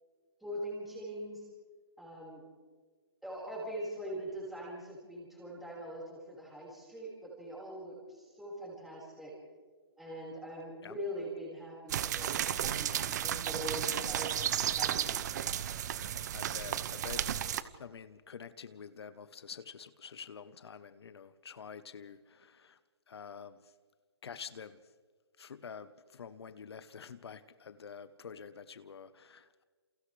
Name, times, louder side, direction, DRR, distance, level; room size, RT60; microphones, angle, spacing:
voice 1, 0.4-1.5 2.0-2.4 3.2-9.3 10.0-15.4, equal, ahead, 4.9 m, -42 dB
sound 1, 11.9-17.6, right 10 dB, 40° right, 1.0 m, -33 dB
voice 2, 16.3-17.4 17.8-22.8 23.1-23.7 24.2-24.8 25.4-29.6, left 6 dB, 70° left, 1.0 m, -48 dB
29.5 x 28.5 x 3.4 m
hypercardioid pair, 155°, 14 cm